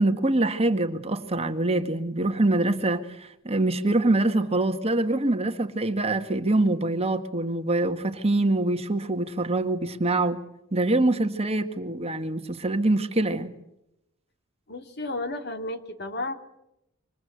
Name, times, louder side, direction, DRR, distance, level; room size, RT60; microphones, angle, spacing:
voice 1, 0.0-10.4 10.7-13.5, right 2 dB, 30° right, 1.8 m, -24 dB
voice 2, 14.7-16.3, left 2 dB, 50° left, 2.7 m, -32 dB
27.5 x 25.5 x 8.0 m
head